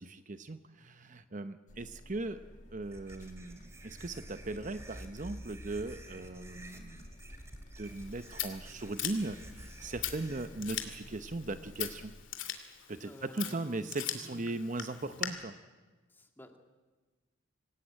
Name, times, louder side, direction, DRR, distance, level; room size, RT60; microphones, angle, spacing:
voice 1, 0.0-2.4 2.7-7.1 7.8-12.1 12.9-15.5, right 2 dB, 40° right, 11 dB, 0.8 m, -38 dB
sound 1, 1.7-12.2, left 1 dB, 40° left, 1.7 m, -53 dB
sound 2, 2.8-10.5, right 1 dB, 15° right, 2.3 m, -50 dB
Scissors, 7.8-15.3, left 11 dB, 65° left, 2.5 m, -41 dB
voice 2, 13.0-13.9 14.2-14.5 16.1-16.6, left 1 dB, 10° left, 5 dB, 1.9 m, -53 dB
26.5 x 17.0 x 8.8 m, 1.3 s
head